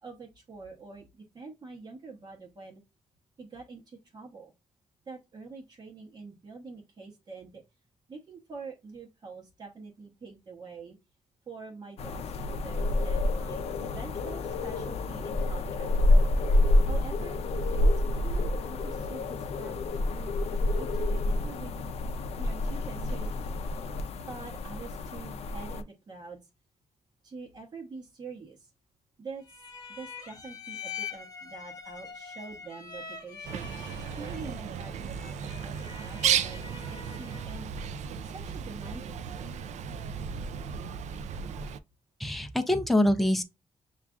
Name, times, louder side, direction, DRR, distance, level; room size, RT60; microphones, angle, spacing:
voice 1, 0.0-2.8 3.4-4.5 5.1-7.6 8.1-11.0 11.5-16.0 16.9-17.4 17.7-20.4 20.7-21.8 22.4-23.3 24.3-26.5 27.2-28.7 29.2-29.6 29.9-33.7 34.1-37.7 38.2-39.5, right 4 dB, 35° right, 0.9 m, -45 dB
sound 1, 12.0-25.8, left 2 dB, 60° left, 0.5 m, -28 dB
sound 2, 29.5-37.6, left 6 dB, 30° left, 0.9 m, -44 dB
Bird, 33.4-41.8, right 8 dB, 75° right, 0.4 m, -34 dB
voice 2, 42.2-43.4, left 1 dB, ahead, 0.4 m, -24 dB
7.1 x 2.4 x 2.4 m
wide cardioid pair, 180°, 12 cm